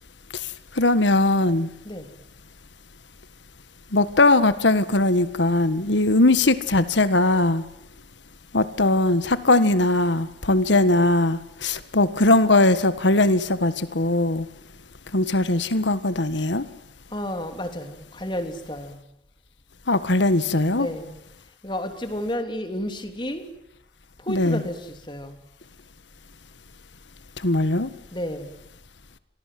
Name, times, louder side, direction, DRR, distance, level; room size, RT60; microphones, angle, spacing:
voice 1, 0.7-1.7 3.9-7.6 8.5-14.4 15.1-16.6 19.9-20.9 24.3-24.6 27.4-27.9, left 2 dB, 85° left, 13 dB, 1.6 m, -20 dB
voice 2, 17.1-19.0 20.7-21.1 21.6-23.5 24.2-25.4 28.1-28.5, equal, 25° left, 7 dB, 3.4 m, -31 dB
29.0 x 23.5 x 7.7 m, 0.82 s
head